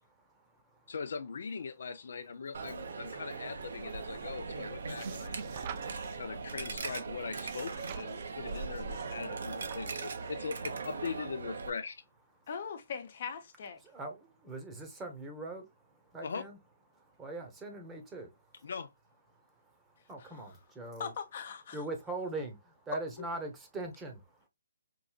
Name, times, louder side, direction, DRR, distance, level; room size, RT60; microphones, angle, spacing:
voice 1, 0.1-0.9 13.8-16.6 16.9-18.7 19.3-21.1 21.7-24.5, right 2 dB, 10° right, 0.9 m, -43 dB
voice 2, 0.9-5.3 6.2-12.0 16.2-16.4 18.6-18.9, left 5 dB, 65° left, 0.5 m, -40 dB
Coin (dropping), 2.5-11.7, right 4 dB, 70° right, 0.9 m, -40 dB
sound 1, 3.6-10.4, right 5 dB, 35° right, 0.5 m, -47 dB
voice 3, 12.5-13.8 21.0-21.8, left 6 dB, 50° left, 0.9 m, -40 dB
4.6 x 2.6 x 2.3 m
hypercardioid pair, 155°, 0 cm